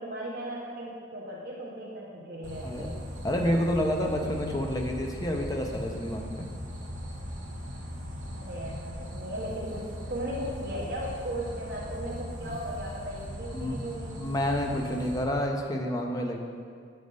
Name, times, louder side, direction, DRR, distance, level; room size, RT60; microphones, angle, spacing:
voice 1, 0.0-3.0 8.3-14.2, right 1 dB, 50° right, -4 dB, 0.8 m, -37 dB
sound 1, 2.4-15.2, equal, 80° right, 1.2 m, -39 dB
voice 2, 3.2-6.5 12.4-12.6 13.5-13.8 14.2-16.4, equal, 20° left, 1 dB, 0.5 m, -29 dB
7.5 x 3.4 x 5.3 m, 2.1 s
head